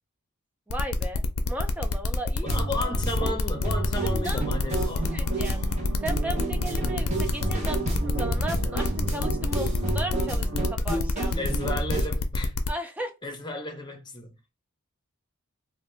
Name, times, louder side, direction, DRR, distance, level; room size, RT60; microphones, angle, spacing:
sound 1, 0.7-12.7, left 4 dB, 70° left, 0.5 m, -29 dB
voice 1, 0.7-2.6 4.1-4.4 5.1-5.6 6.0-11.4 12.7-13.1, equal, 5° right, 0.3 m, -35 dB
voice 2, 2.4-5.1 11.4-12.6 13.2-14.4, left 2 dB, 20° left, 0.7 m, -34 dB
sound 2, 2.5-12.1, right 2 dB, 30° right, 0.9 m, -31 dB
sound 3, 3.6-10.8, right 2 dB, 85° right, 0.7 m, -40 dB
2.8 x 2.2 x 3.2 m
head